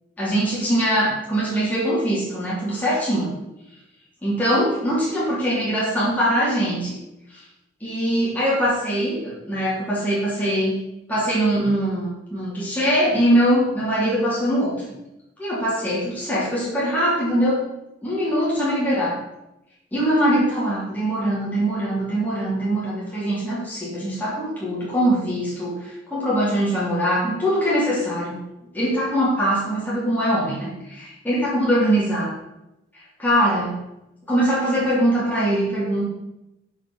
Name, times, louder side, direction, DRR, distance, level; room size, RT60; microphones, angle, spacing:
voice 1, 0.2-3.3 4.2-7.0 7.3-7.4 7.8-10.8 11.1-14.9 15.4-17.6 18.0-19.2 19.9-28.4 28.7-32.3 33.2-33.8 34.3-36.0, equal, 10° left, -9 dB, 3.3 m, -22 dB
9.2 x 5.7 x 5.6 m, 0.91 s
head